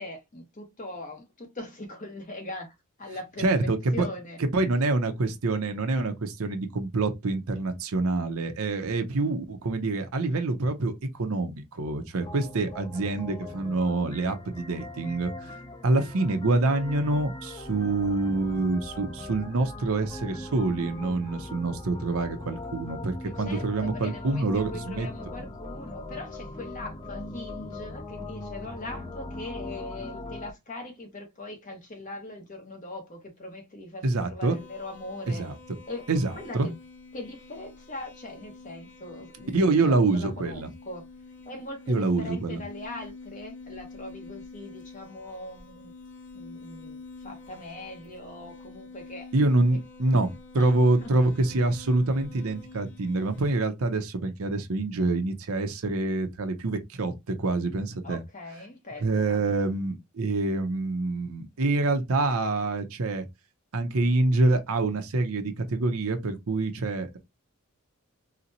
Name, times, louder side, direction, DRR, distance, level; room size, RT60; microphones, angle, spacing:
voice 1, 0.0-4.4 12.9-13.0 13.3-13.4 23.2-35.4 35.9-36.1 36.3-36.7 37.1-41.1 41.4-45.9 46.3-49.6 50.6-50.7 51.0-51.1 58.0-59.4, left 2 dB, 35° left, 1.0 m, -41 dB
voice 2, 3.4-4.1 4.5-15.3 15.8-25.1 34.0-34.6 35.3-35.5 36.1-36.7 39.5-40.7 41.9-42.6 49.3-50.3 50.5-58.2 59.0-63.3 63.7-67.2, right 2 dB, 70° right, 0.7 m, -26 dB
sound 1, 12.2-30.5, left 2 dB, 20° left, 0.6 m, -40 dB
sound 2, 34.5-53.5, left 3 dB, 55° left, 0.8 m, -47 dB
3.9 x 2.1 x 2.8 m
head